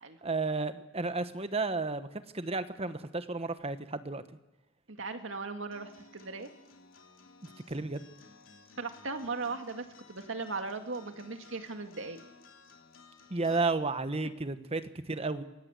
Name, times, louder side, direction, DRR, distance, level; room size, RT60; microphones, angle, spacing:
voice 1, 0.2-2.1 2.3-4.2 7.4-8.1 13.3-15.4, right 3 dB, 30° right, 10 dB, 1.1 m, -32 dB
voice 2, 4.9-6.5 8.8-12.2, right 3 dB, 75° right, 6 dB, 2.1 m, -38 dB
Acoustic guitar, 5.7-13.7, left 4 dB, 80° left, 3.3 m, -57 dB
27.0 x 16.5 x 8.3 m, 1.0 s
head